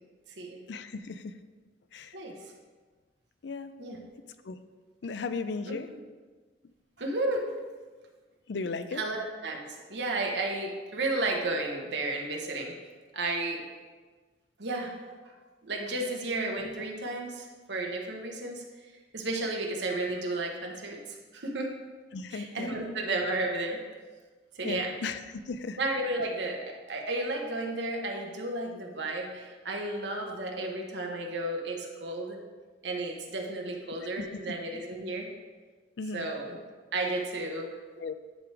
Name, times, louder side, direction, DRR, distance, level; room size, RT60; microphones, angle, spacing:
voice 1, 0.7-1.3 1.9-2.2 3.4-3.7 4.4-4.6 5.0-5.9 8.5-9.0 22.1-22.7 24.6-25.8 34.0-34.5 36.0-36.3 38.0-38.1, left 4 dB, 70° left, 11 dB, 0.4 m, -36 dB
voice 2, 5.7-6.0 7.0-7.5 8.9-12.7 13.1-13.6 14.6-14.9 15.6-18.6 19.1-21.0 21.3-21.7 22.3-23.8 24.6-24.9 25.8-32.4 32.8-35.3 36.1-36.6 36.9-37.7, right 2 dB, 75° right, 1 dB, 1.1 m, -33 dB
10.0 x 3.4 x 4.7 m, 1.4 s
head